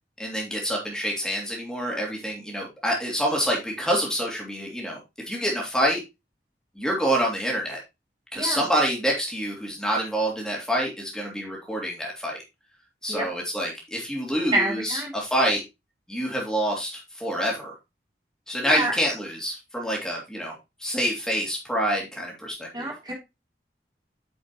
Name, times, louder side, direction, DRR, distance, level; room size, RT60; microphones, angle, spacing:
voice 1, 0.2-5.0 5.3-6.0 6.7-7.8 8.3-12.4 13.0-15.6 16.1-17.7 18.5-20.5 20.8-22.9, equal, 5° left, -2 dB, 3.3 m, -27 dB
voice 2, 14.5-15.1 18.6-18.9 22.7-23.1, right 1 dB, 25° right, -1 dB, 3.3 m, -27 dB
9.1 x 6.3 x 3.0 m, 0.23 s
head